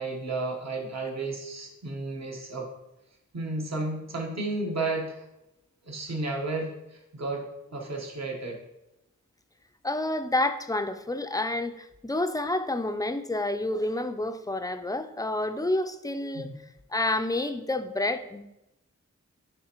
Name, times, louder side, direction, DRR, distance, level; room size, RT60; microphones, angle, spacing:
voice 1, 0.0-2.7 3.3-5.2 5.8-7.4 7.7-8.6 16.3-16.6, right 2 dB, 60° right, 0 dB, 1.2 m, -32 dB
voice 2, 9.8-16.5 16.9-18.4, left 2 dB, 10° left, 8 dB, 0.4 m, -29 dB
10.0 x 3.4 x 2.9 m, 0.90 s
wide cardioid pair, 60°, 30 cm